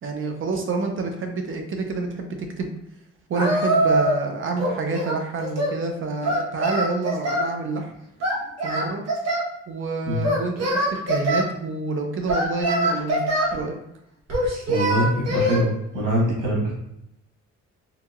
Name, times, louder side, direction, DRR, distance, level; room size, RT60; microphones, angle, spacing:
voice 1, 0.0-2.7 3.3-7.9 8.6-9.0 9.7-13.8, right 3 dB, 45° right, 4 dB, 0.5 m, -28 dB
Singing, 3.3-4.3 4.6-5.8 6.2-7.5 8.2-9.5 10.2-11.5 12.3-13.6 14.3-15.6, right 1 dB, 60° right, 1.1 m, -23 dB
voice 2, 14.7-16.7, equal, 85° right, -4 dB, 1.3 m, -23 dB
2.8 x 2.8 x 2.3 m, 0.82 s
cardioid pair, 90°, 30 cm